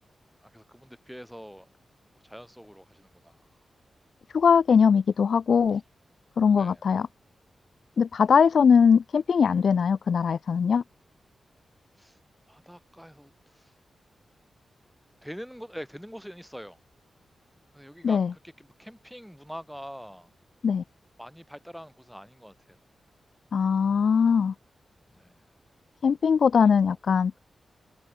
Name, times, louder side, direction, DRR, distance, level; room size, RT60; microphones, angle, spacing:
voice 1, 0.4-1.7 2.2-3.5 6.5-7.0 12.0-12.2 12.5-13.7 15.2-16.8 17.7-20.3 21.2-22.8 25.1-25.4 26.6-26.7, equal, ahead, 4.8 m, -44 dB
voice 2, 4.3-5.8 6.4-7.1 8.0-10.8 18.0-18.3 20.6-20.8 23.5-24.5 26.0-27.3, left 6 dB, 60° left, 0.4 m, -21 dB
wide cardioid pair, 135°, 0 cm